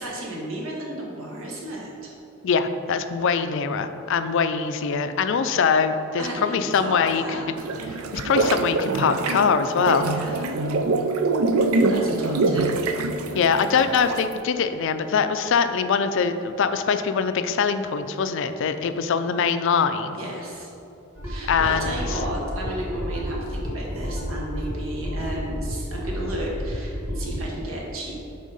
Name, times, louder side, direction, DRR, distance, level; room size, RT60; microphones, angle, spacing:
voice 1, 0.0-2.2 6.2-7.7 10.1-10.7 11.8-12.7 13.3-13.5 20.2-20.7 21.2-28.1, right 1 dB, 70° right, -2 dB, 1.5 m, -34 dB
voice 2, 2.4-7.2 8.1-10.1 13.3-20.2 21.5-22.0, left 6 dB, 65° left, 10 dB, 0.4 m, -23 dB
sound 1, 7.6-14.3, right 3 dB, 90° right, 0.5 m, -24 dB
sound 2, 21.1-27.5, equal, 10° right, 1.4 m, -31 dB
6.3 x 4.2 x 5.4 m, 2.7 s
head